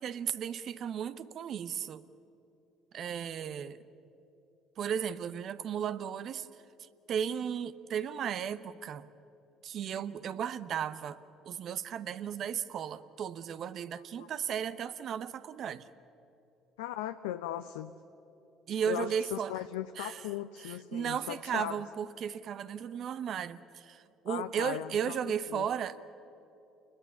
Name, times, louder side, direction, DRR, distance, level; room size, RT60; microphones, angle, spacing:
voice 1, 0.0-2.0 2.9-3.8 4.8-6.5 6.8-9.1 9.6-11.2 11.4-15.9 18.7-19.5 20.0-20.3 20.6-26.1, right 8 dB, 55° right, 13 dB, 1.0 m, -35 dB
voice 2, 16.8-17.9 18.8-21.8 24.3-25.2 25.5-25.7, left 13 dB, 85° left, 9 dB, 0.6 m, -38 dB
29.0 x 21.0 x 7.1 m, 2.9 s
hypercardioid pair, 60°, 0 cm